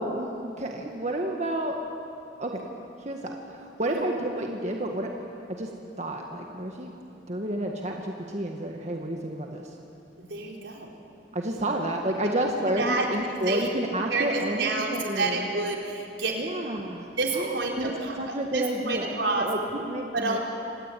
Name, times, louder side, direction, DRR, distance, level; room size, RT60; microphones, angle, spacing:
voice 1, 0.0-1.8 2.4-2.6 3.0-5.1 5.5-5.7 6.0-7.0 7.3-9.8 11.3-15.5 16.4-20.4, right 1 dB, 40° right, 1 dB, 1.7 m, -30 dB
voice 2, 10.2-10.9 12.6-13.7 14.1-16.4 17.2-19.5 20.1-20.4, right 3 dB, 80° right, 0 dB, 4.1 m, -29 dB
26.5 x 18.5 x 9.3 m, 2.6 s
head